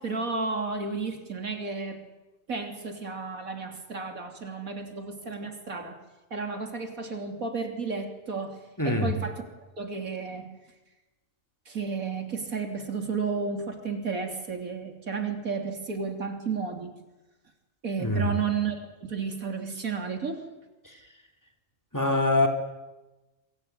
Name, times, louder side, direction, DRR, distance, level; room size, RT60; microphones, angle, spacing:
voice 1, 0.0-2.0 2.5-6.0 6.3-8.6 8.8-9.4 9.8-10.5 11.7-16.9 17.8-20.4, right 4 dB, 85° right, 4 dB, 3.6 m, -32 dB
voice 2, 8.8-9.1 18.0-18.3 20.8-21.0 21.9-22.5, left 2 dB, 15° left, 3 dB, 3.3 m, -24 dB
26.5 x 22.5 x 9.5 m, 1.1 s
omnidirectional pair, 1.4 m